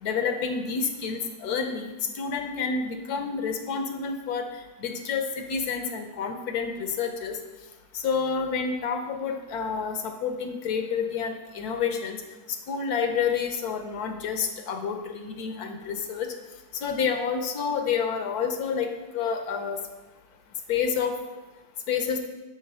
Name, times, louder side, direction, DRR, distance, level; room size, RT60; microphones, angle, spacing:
voice 1, 0.0-1.9 2.1-4.5 4.8-7.4 7.9-12.2 12.7-16.3 16.8-18.9 19.1-19.8 20.7-21.1 21.9-22.2, left 6 dB, 75° left, 5 dB, 1.2 m, -29 dB
6.4 x 3.6 x 5.3 m, 1.1 s
omnidirectional pair, 1.7 m